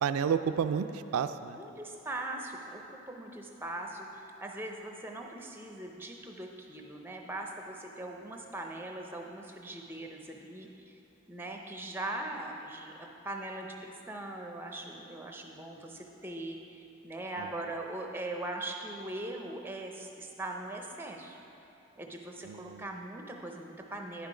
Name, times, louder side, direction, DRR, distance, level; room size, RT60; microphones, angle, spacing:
voice 1, 0.0-1.6 17.4-17.5 22.4-22.8, right 7 dB, 80° right, 11 dB, 0.3 m, -31 dB
voice 2, 1.6-10.9 11.3-21.4 22.0-24.3, right 2 dB, 10° right, 2 dB, 0.5 m, -41 dB
10.0 x 5.8 x 5.0 m, 2.8 s
head